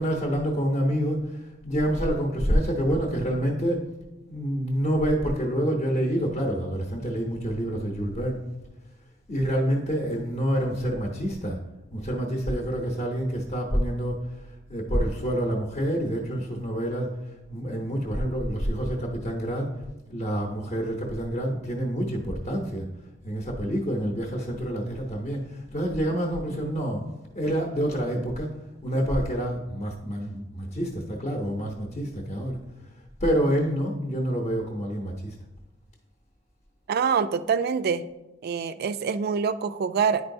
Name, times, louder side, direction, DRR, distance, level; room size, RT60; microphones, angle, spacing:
voice 1, 0.0-3.8 4.3-8.4 9.3-11.6 11.9-14.4 14.7-17.2 17.5-22.9 23.2-27.0 27.3-28.5 28.8-32.6 33.2-35.4, equal, 35° left, 0 dB, 0.8 m, -27 dB
voice 2, 36.9-38.0 38.4-40.2, right 6 dB, 55° right, 13 dB, 0.3 m, -25 dB
9.7 x 4.6 x 2.6 m, 1.0 s
head